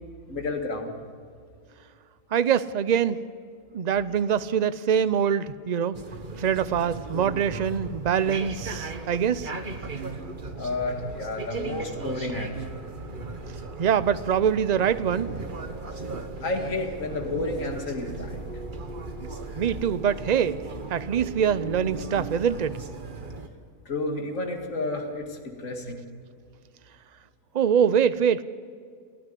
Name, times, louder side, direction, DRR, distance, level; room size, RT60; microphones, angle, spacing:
voice 1, 0.3-0.9 10.6-12.8 16.4-18.4 23.9-26.0, left 2 dB, 60° left, 3 dB, 2.5 m, -31 dB
voice 2, 2.3-3.2 3.7-6.0 6.4-9.5 13.8-15.8 19.6-20.6 20.9-22.8 27.5-28.4, right 8 dB, 60° right, 14 dB, 0.4 m, -24 dB
sound 1, 5.9-23.5, right 3 dB, 35° right, 1.3 m, -37 dB
29.5 x 9.9 x 10.0 m, 2.2 s
omnidirectional pair, 1.5 m